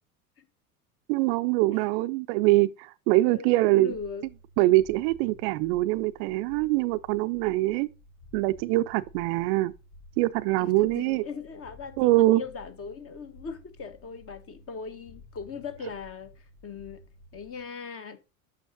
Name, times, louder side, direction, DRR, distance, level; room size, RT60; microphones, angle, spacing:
voice 1, 1.1-3.9 4.6-7.9 8.3-9.7 10.2-11.2 12.0-12.4, right 18 dB, 50° right, 0.5 m, -23 dB
voice 2, 3.3-4.3 10.6-17.1 17.3-18.2, left 5 dB, 30° left, 1.2 m, -40 dB
sound 1, 3.9-17.6, left 2 dB, 70° left, 2.4 m, -53 dB
9.1 x 6.2 x 2.6 m
hypercardioid pair, 75°, 43 cm